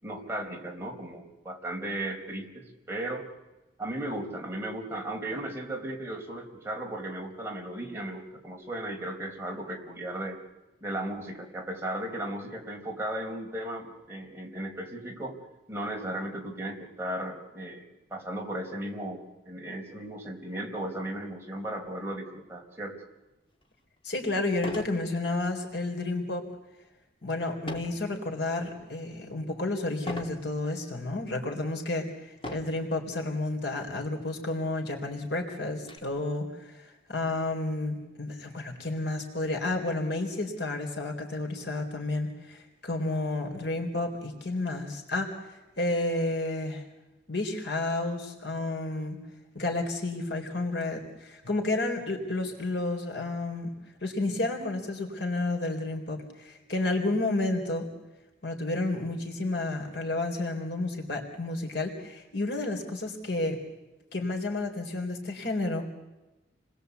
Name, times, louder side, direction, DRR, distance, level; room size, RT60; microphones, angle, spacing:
voice 1, 0.0-3.2 3.8-10.4 10.8-15.4 15.7-17.8 18.1-23.0, right 1 dB, 15° right, 0 dB, 4.3 m, -36 dB
sound 1, 23.6-23.7 24.6-25.0 25.4-25.8 27.7-28.0 28.6-29.1 30.1-30.4 31.2-31.3 32.4-32.8 33.9-34.0 34.3-34.4 34.9-36.0, equal, 30° left, 2.8 m, -39 dB
voice 2, 24.0-26.4 27.2-46.8 47.3-49.2 49.5-53.7 54.0-57.9 58.4-63.6 64.1-65.8, left 2 dB, 70° left, 2 dB, 4.0 m, -31 dB
29.5 x 21.0 x 8.2 m, 1.1 s
head